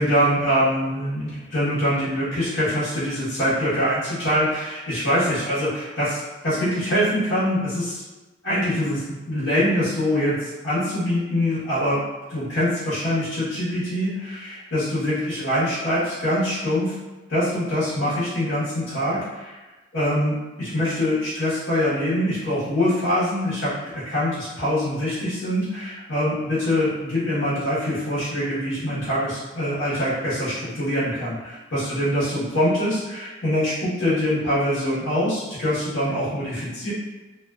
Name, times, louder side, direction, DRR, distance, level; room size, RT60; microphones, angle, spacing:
voice 1, 0.0-8.0 8.4-12.0 12.3-17.0 17.3-19.6 19.9-36.9, equal, 80° left, -12 dB, 0.9 m, -24 dB
2.4 x 2.2 x 2.3 m, 1.2 s
head